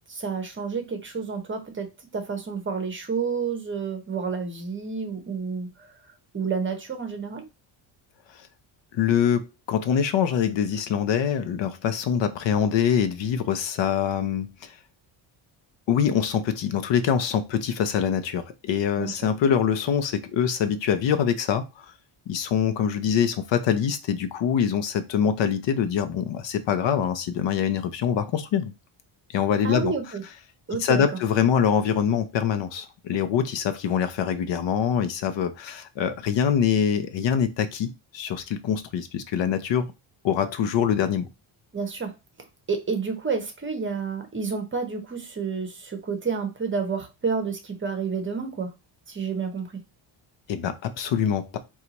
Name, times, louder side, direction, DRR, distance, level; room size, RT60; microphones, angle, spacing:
voice 1, 0.0-5.9 6.3-7.5 19.0-19.3 29.6-30.2 30.7-31.0 41.7-42.1 42.7-48.7 49.1-49.7, right 5 dB, 25° right, 0.8 m, -30 dB
voice 2, 8.9-14.7 15.9-21.9 22.3-28.7 29.3-29.9 30.8-39.9 40.2-41.3 50.5-51.6, left 8 dB, 60° left, 0.7 m, -24 dB
4.3 x 2.4 x 4.0 m
cardioid pair, 140°, 49 cm